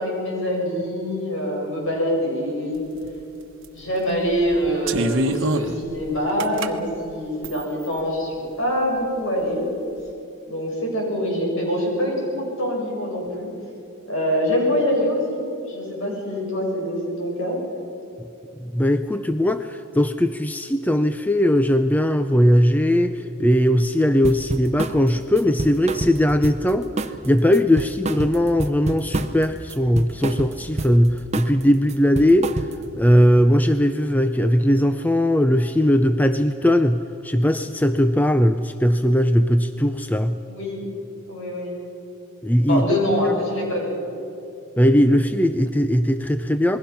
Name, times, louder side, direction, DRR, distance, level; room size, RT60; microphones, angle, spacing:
voice 1, 0.0-2.8 3.8-9.7 10.5-13.5 14.1-15.4 15.7-17.6 40.5-40.8 41.3-41.8 42.7-44.0, equal, 60° left, -1 dB, 7.3 m, -24 dB
sound 1, 3.0-3.1 3.6-3.9 4.4-6.7 7.4-7.9, right 1 dB, 60° right, 1.2 m, -25 dB
voice 2, 18.6-32.7 32.9-40.4 42.4-42.8 43.2-43.4 44.8-46.8, equal, 10° left, 9 dB, 0.5 m, -19 dB
sound 2, 24.2-25.0 25.4-26.7 27.0-27.3 27.5-29.4 29.7-31.0 31.3-31.6 31.9-32.9, right 2 dB, 30° right, 0.8 m, -28 dB
28.0 x 21.0 x 5.9 m, 2.8 s
head